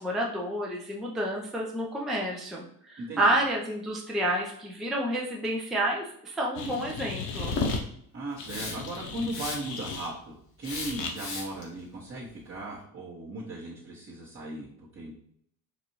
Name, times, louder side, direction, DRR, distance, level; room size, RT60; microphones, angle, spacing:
voice 1, 0.0-7.6, right 1 dB, ahead, -2 dB, 0.5 m, -29 dB
sound 1, 6.6-7.8 8.4-10.1 10.6-11.1, left 4 dB, 90° left, 0.6 m, -34 dB
voice 2, 8.1-15.1, right 2 dB, 25° right, -7 dB, 1.0 m, -37 dB
Hiss, 8.4-9.0 9.3-9.9 10.6-11.6, left 3 dB, 50° left, 1.4 m, -37 dB
4.1 x 2.5 x 3.0 m, 0.68 s
hypercardioid pair, 65°, 47 cm